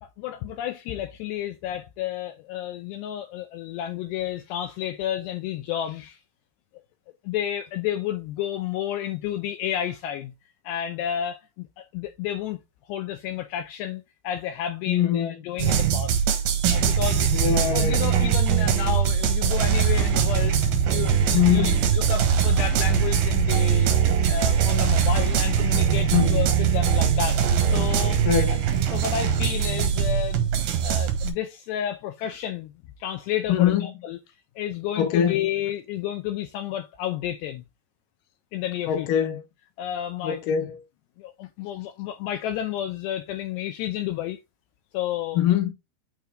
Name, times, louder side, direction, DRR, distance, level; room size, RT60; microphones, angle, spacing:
voice 1, 0.2-6.2 7.2-10.3 10.6-12.6 12.9-16.2 16.7-17.3 17.6-23.9 24.3-27.4 27.7-28.2 28.9-30.5 30.8-32.7 33.0-34.2 34.6-37.6 38.5-39.3 39.8-40.4 41.2-44.4 44.9-45.5, left 11 dB, 80° left, 2.6 m, -31 dB
voice 2, 14.9-15.3 17.3-18.0 21.3-21.8 26.1-26.4 28.2-28.6 33.5-33.9 35.0-35.4 38.9-39.4 40.2-40.8 45.3-45.7, left 10 dB, 60° left, 2.5 m, -23 dB
sound 1, 15.6-31.3, right 7 dB, 65° right, 2.8 m, -22 dB
9.2 x 4.3 x 3.8 m
omnidirectional pair, 5.4 m